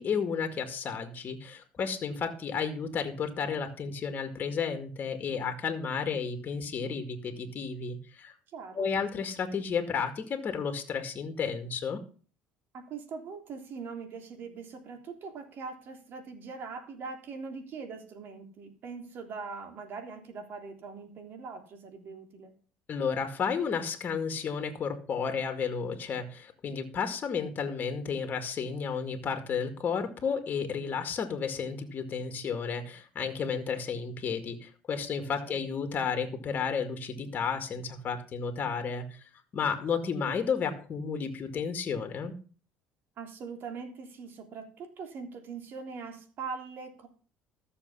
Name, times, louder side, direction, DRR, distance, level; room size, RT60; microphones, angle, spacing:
voice 1, 0.0-8.3 8.7-12.0 22.9-39.1 39.5-42.4, left 6 dB, 40° left, 7 dB, 2.2 m, -32 dB
voice 2, 8.5-8.9 12.7-22.5 35.2-35.6 43.2-47.1, right 5 dB, 55° right, 5 dB, 3.2 m, -42 dB
13.5 x 7.0 x 5.6 m, 0.39 s
supercardioid pair, 95°, 4 cm